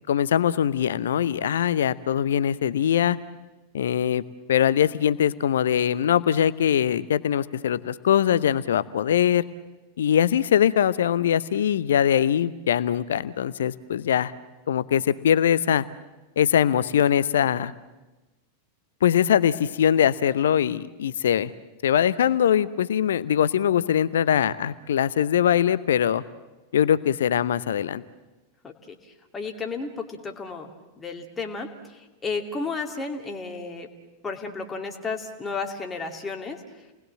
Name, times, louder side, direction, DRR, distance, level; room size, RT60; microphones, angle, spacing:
voice 1, 0.0-3.2 3.7-4.2 4.5-9.4 10.0-14.3 14.7-15.8 16.4-17.7 19.0-21.5 21.8-26.2 26.7-28.0, left 9 dB, 60° left, 17 dB, 0.8 m, -22 dB
voice 2, 28.6-30.7 31.0-33.9 34.2-36.8, left 4 dB, 15° left, 3 dB, 2.5 m, -33 dB
30.0 x 20.0 x 7.5 m, 1.1 s
figure-of-eight pair, 90°, 0 cm